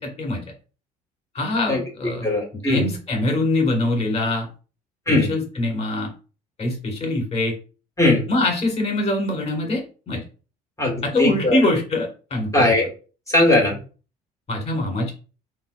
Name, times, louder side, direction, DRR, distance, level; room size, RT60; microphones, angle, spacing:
voice 1, 1.3-2.3 2.7-4.5 5.1-6.1 6.6-7.5 8.3-9.8 10.1-10.2 11.0-12.5 14.5-15.1, left 2 dB, 35° left, 1 dB, 1.5 m, -23 dB
voice 2, 2.2-2.9 5.1-5.3 8.0-8.2 10.8-11.6 12.5-12.8 13.3-13.8, left 2 dB, 15° left, -3 dB, 1.4 m, -19 dB
3.2 x 2.6 x 2.4 m, 0.36 s
supercardioid pair, 70°, 19 cm